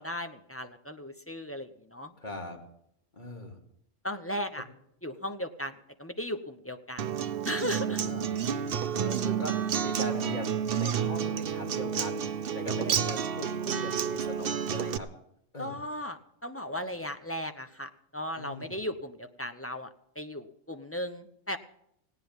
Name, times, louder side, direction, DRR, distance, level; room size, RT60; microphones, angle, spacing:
voice 1, 0.0-2.1 4.0-4.6 5.0-5.7 6.0-7.0 7.4-8.0 15.6-19.9 20.2-21.6, equal, 15° left, 7 dB, 0.7 m, -36 dB
voice 2, 2.2-2.6 3.1-3.6 7.8-8.4 8.9-15.1 15.5-15.8 18.4-18.8, left 1 dB, 35° left, 1 dB, 2.7 m, -40 dB
Acoustic guitar, 7.0-15.0, right 8 dB, 55° right, 0.9 m, -30 dB
18.5 x 17.0 x 3.6 m, 0.74 s
omnidirectional pair, 1.3 m